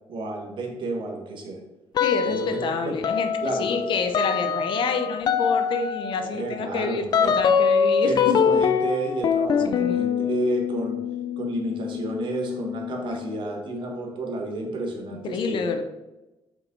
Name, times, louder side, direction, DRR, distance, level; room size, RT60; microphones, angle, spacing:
voice 1, 0.1-1.6 2.2-3.0 3.4-3.9 6.2-7.3 8.0-11.0 11.4-15.6, right 2 dB, 60° right, 1 dB, 1.4 m, -31 dB
sound 1, 1.9-2.7 3.0-13.4, left 6 dB, 45° left, 0.4 m, -24 dB
voice 2, 2.0-8.4 9.6-10.0 15.2-15.8, left 5 dB, 65° left, 7 dB, 0.7 m, -28 dB
6.2 x 5.4 x 3.9 m, 1.0 s
wide cardioid pair, 175°, 9 cm